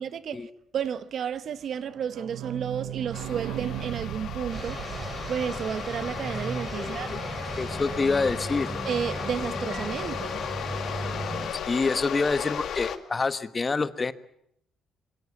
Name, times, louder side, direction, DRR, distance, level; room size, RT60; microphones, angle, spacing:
voice 1, 0.0-5.0 5.3-7.3 8.8-11.4, right 8 dB, 60° right, 1.2 m, -32 dB
sound 1, 1.8-7.3 7.6-7.7 7.9-8.0 8.3-8.4, right 14 dB, 80° right, 1.0 m, -38 dB
sound 2, 3.1-13.0, left 8 dB, 70° left, 2.2 m, -35 dB
sound 3, 4.5-11.5, right 2 dB, 35° right, 5.0 m, -36 dB
voice 2, 7.6-8.7 11.5-14.1, left 4 dB, 30° left, 1.3 m, -27 dB
25.5 x 23.0 x 7.1 m
cardioid pair, 90°, 0 cm